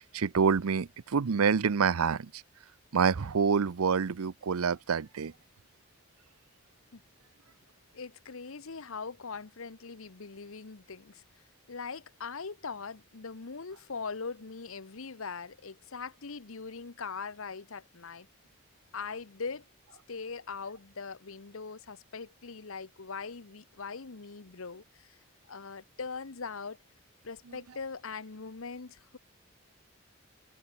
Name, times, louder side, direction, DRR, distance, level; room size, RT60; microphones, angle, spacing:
voice 1, 0.1-2.3 2.9-5.3, right 6 dB, 85° right, 0.6 m, -27 dB
voice 2, 7.9-11.2 11.7-18.3 18.9-19.6 20.1-25.1 25.5-26.8 27.2-29.2, left 5 dB, 70° left, 0.9 m, -41 dB
head